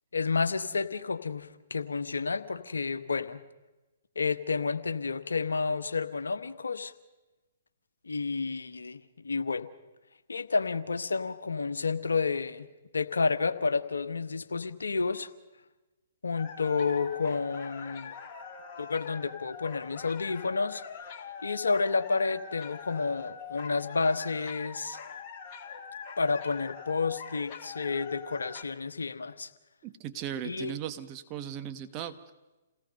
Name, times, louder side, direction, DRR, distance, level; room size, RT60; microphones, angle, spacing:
voice 1, 0.1-3.4 4.1-6.9 8.1-9.7 10.3-12.7 12.9-15.3 16.2-18.1 18.8-20.8 21.4-25.0 26.2-29.5 30.4-30.7, left 4 dB, 80° left, 10 dB, 1.2 m, -30 dB
sound 1, 16.4-28.6, left 6 dB, 40° left, 2.0 m, -43 dB
voice 2, 29.8-32.2, right 10 dB, 30° right, 8 dB, 1.5 m, -37 dB
28.0 x 17.5 x 5.4 m, 1.1 s
figure-of-eight pair, 125°, 0 cm